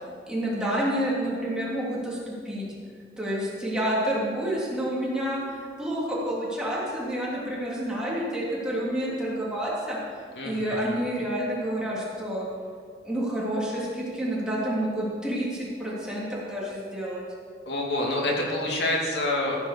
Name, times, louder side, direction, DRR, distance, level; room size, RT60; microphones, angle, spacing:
voice 1, 0.3-2.6 3.2-10.0 10.4-12.5 13.0-17.2, right 1 dB, 5° right, -7 dB, 3.2 m, -29 dB
voice 2, 10.4-10.9 17.7-19.7, left 1 dB, 75° left, -2 dB, 2.7 m, -27 dB
15.0 x 8.2 x 6.7 m, 2.1 s
head